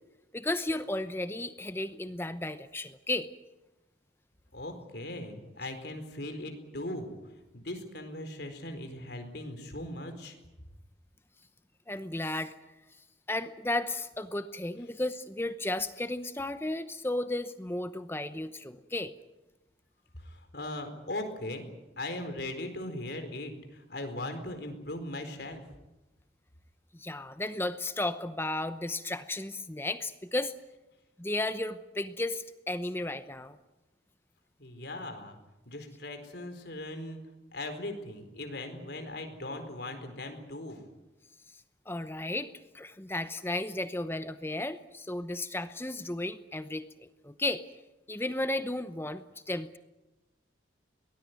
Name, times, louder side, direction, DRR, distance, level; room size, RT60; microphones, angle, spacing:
voice 1, 0.3-3.3 11.9-12.5 13.3-19.1 26.9-30.5 31.2-33.6 41.9-47.6 48.1-49.8, left 2 dB, 10° left, 11 dB, 0.8 m, -34 dB
voice 2, 4.5-7.1 7.5-10.4 20.2-21.6 22.0-25.6 34.6-35.4 35.7-37.2 37.5-40.8, left 1 dB, 60° left, 6 dB, 4.4 m, -39 dB
23.0 x 19.5 x 9.4 m, 1.0 s
head